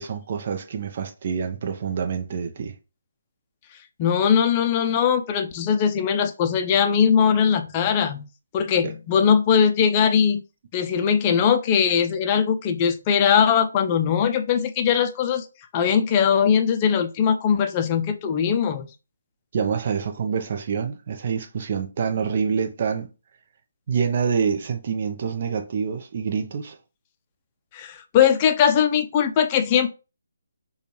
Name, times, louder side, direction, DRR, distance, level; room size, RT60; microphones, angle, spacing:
voice 1, 0.0-2.7 8.8-8.9 19.5-23.1 23.9-26.8, right 6 dB, 45° right, 0.6 m, -26 dB
voice 2, 4.0-8.3 8.5-10.4 10.7-15.5 15.7-18.9 27.7-29.9, left 7 dB, 25° left, 0.5 m, -20 dB
5.0 x 2.3 x 2.9 m
figure-of-eight pair, 150°, 0 cm